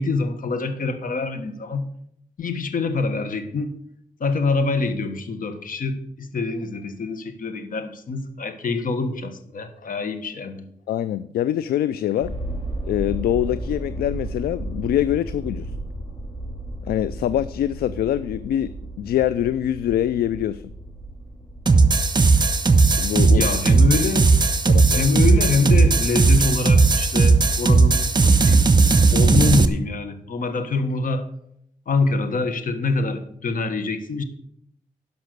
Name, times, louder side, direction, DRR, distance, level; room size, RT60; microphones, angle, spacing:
voice 1, 0.0-1.9 2.4-3.7 4.2-10.7 23.3-24.3 24.9-31.3 31.9-34.2, left 3 dB, 60° left, 10 dB, 1.4 m, -25 dB
voice 2, 10.9-12.3 12.8-15.7 16.9-20.7 23.0-23.4 24.7-25.1, left 11 dB, 80° left, 16 dB, 0.4 m, -24 dB
sound 1, 12.2-26.4 27.0-27.1, right 1 dB, 30° left, 2.9 m, -35 dB
sound 2, 21.7-29.7, right 4 dB, 30° right, 1.1 m, -16 dB
12.0 x 5.5 x 6.8 m, 0.72 s
supercardioid pair, 45°, 16 cm